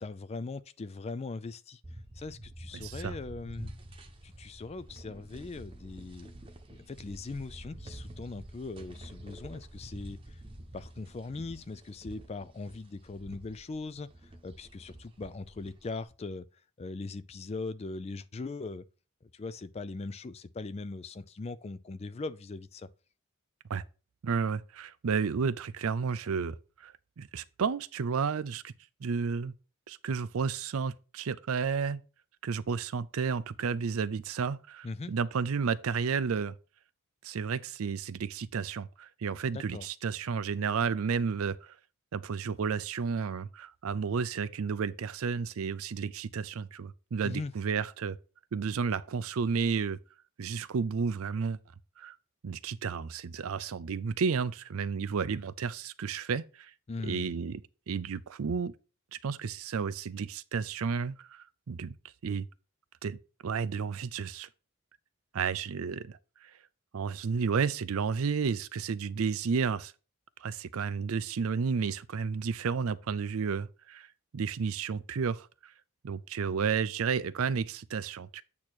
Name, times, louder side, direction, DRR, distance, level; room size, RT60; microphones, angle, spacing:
voice 1, 0.0-1.8 2.1-3.7 4.2-6.3 6.7-10.4 10.7-14.1 14.4-16.5 16.8-18.8 19.2-22.9 34.8-35.1 39.5-39.9 47.2-47.5 56.9-57.3, left 3 dB, 30° left, 0.3 m, -40 dB
sound 1, 1.8-16.0, right 1 dB, 25° right, 0.9 m, -48 dB
voice 2, 2.7-3.1 23.7-23.8 24.2-28.7 29.0-29.5 29.9-32.0 32.4-36.6 37.2-41.8 42.1-48.2 48.5-50.0 50.4-51.6 52.0-52.2 52.4-56.7 57.0-57.6 57.9-58.7 59.1-61.9 62.2-62.5 63.0-64.5 65.3-66.5 66.9-69.9 70.4-74.1 74.3-75.7 76.0-78.4, right 5 dB, 70° right, 0.4 m, -32 dB
8.5 x 2.9 x 6.1 m
head